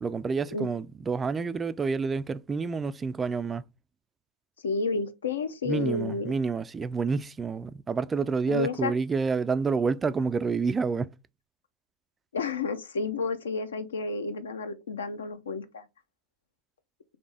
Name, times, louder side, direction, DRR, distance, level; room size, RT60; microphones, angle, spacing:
voice 1, 0.0-3.6 5.7-11.1, right 5 dB, 15° right, 0.3 m, -28 dB
voice 2, 4.6-6.3 8.5-8.9 12.3-15.8, left 4 dB, 65° left, 0.6 m, -31 dB
4.0 x 3.4 x 3.3 m
figure-of-eight pair, 90°, 0 cm